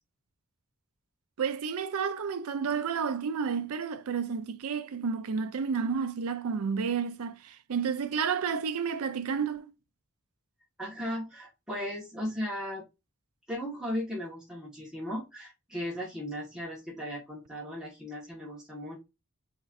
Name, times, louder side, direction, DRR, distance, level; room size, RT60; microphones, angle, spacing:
voice 1, 1.4-9.7, right 6 dB, 80° right, 0.4 m, -31 dB
voice 2, 10.8-12.8 13.5-19.0, equal, 5° right, 1.2 m, -36 dB
4.1 x 3.6 x 2.4 m
head